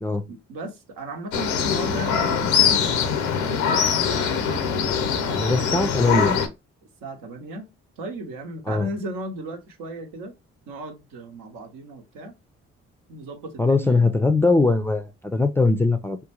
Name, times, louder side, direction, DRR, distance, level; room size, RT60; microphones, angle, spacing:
voice 1, 0.3-5.6 7.0-7.7 8.0-10.3 10.7-12.3 13.1-14.1, right 1 dB, 75° right, 0.8 m, -36 dB
sound 1, 1.3-6.5, left 7 dB, 85° left, 0.6 m, -22 dB
voice 2, 5.3-6.4 8.7-8.9 13.6-16.2, left 3 dB, 5° left, 0.4 m, -21 dB
3.7 x 2.2 x 2.9 m
hypercardioid pair, 40°, 34 cm